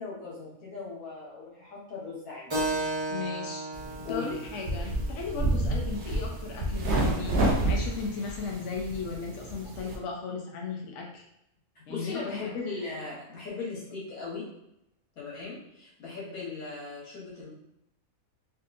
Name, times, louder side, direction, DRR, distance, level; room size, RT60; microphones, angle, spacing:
voice 1, 0.0-2.5 4.0-4.3 11.7-14.4 15.2-17.5, left 4 dB, 85° left, -5 dB, 1.6 m, -38 dB
Keyboard (musical), 2.5-7.6, right 2 dB, 30° right, 0.6 m, -36 dB
voice 2, 3.1-3.7 4.1-7.4 7.6-11.2 11.9-12.5, left 4 dB, 65° left, 0 dB, 0.9 m, -36 dB
sound 1, 3.7-10.0, right 1 dB, 60° right, 0.9 m, -30 dB
3.7 x 2.5 x 2.5 m, 0.82 s
omnidirectional pair, 1.5 m